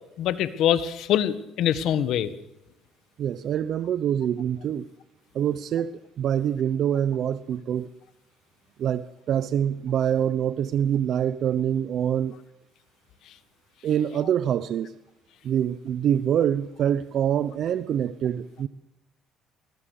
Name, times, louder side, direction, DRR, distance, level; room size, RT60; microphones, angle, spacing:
voice 1, 0.2-2.3, left 10 dB, 70° left, 13 dB, 1.6 m, -24 dB
voice 2, 3.2-4.9 5.3-7.9 8.8-12.4 13.8-14.9 15.4-18.7, right 9 dB, 60° right, 14 dB, 0.8 m, -25 dB
21.0 x 20.0 x 6.6 m, 0.87 s
cardioid pair, 95°, 0 cm